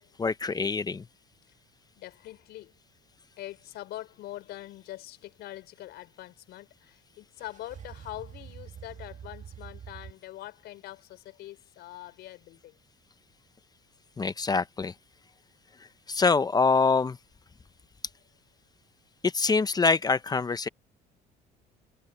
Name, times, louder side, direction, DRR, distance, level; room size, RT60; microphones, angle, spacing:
voice 1, 0.2-1.0 14.2-14.9 16.1-17.2 19.2-20.7, left 4 dB, 20° left, 0.8 m, -25 dB
voice 2, 2.0-2.7 3.4-12.8, left 15 dB, 70° left, 5.7 m, -43 dB
sound 1, 7.4-10.1, right 8 dB, 45° right, 1.7 m, -45 dB
cardioid pair, 105°, 17 cm